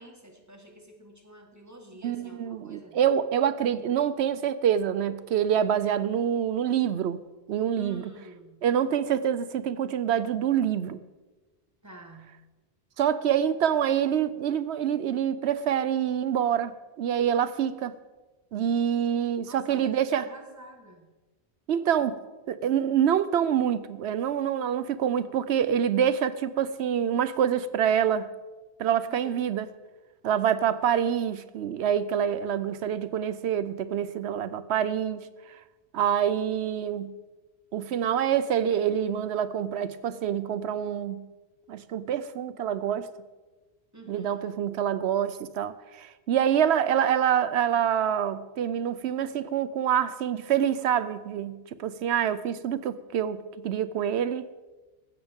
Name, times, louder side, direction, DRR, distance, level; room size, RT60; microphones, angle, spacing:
voice 1, 0.0-3.0 7.7-8.7 11.8-12.4 19.5-21.1 29.1-29.4 43.9-44.5, right 1 dB, 15° right, 1.5 m, -48 dB
voice 2, 2.0-7.2 7.5-8.0 8.6-11.0 13.0-18.0 18.5-20.2 21.7-22.2 22.5-28.3 28.8-29.7 30.2-35.3 35.9-37.1 37.7-41.3 41.7-43.1 44.1-54.4, right 9 dB, 80° right, 0.9 m, -26 dB
16.0 x 13.0 x 3.6 m
omnidirectional pair, 1.1 m